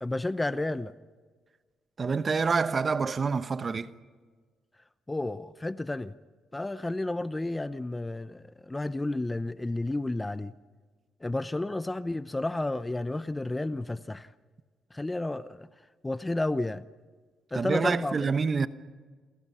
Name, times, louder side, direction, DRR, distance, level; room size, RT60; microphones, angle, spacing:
voice 1, 0.0-0.9 5.1-6.1 6.5-10.5 11.2-14.3 14.9-15.7 16.0-16.8 17.5-18.2, left 2 dB, 15° left, 0.7 m, -31 dB
voice 2, 2.0-3.9 17.5-18.7, right 5 dB, 40° right, 1.0 m, -27 dB
29.0 x 23.0 x 5.6 m
cardioid pair, 90°, 0 cm